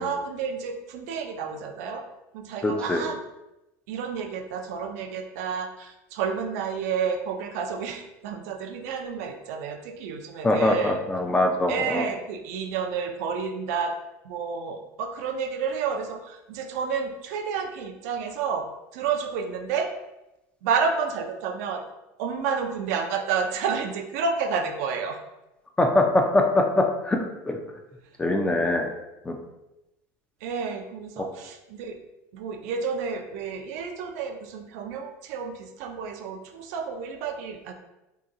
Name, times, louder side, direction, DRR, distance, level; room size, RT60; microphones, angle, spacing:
voice 1, 0.0-2.0 2.3-3.2 3.9-11.0 11.7-13.9 14.2-19.9 20.6-21.8 22.2-25.2 30.4-32.0 32.3-37.7, right 6 dB, 75° right, 5 dB, 0.4 m, -30 dB
voice 2, 2.6-3.0 10.4-12.1 25.8-27.6 28.2-28.9 29.3-29.4, left 2 dB, 10° left, 3 dB, 0.4 m, -23 dB
2.8 x 2.2 x 3.7 m, 0.94 s
supercardioid pair, 125°, 9 cm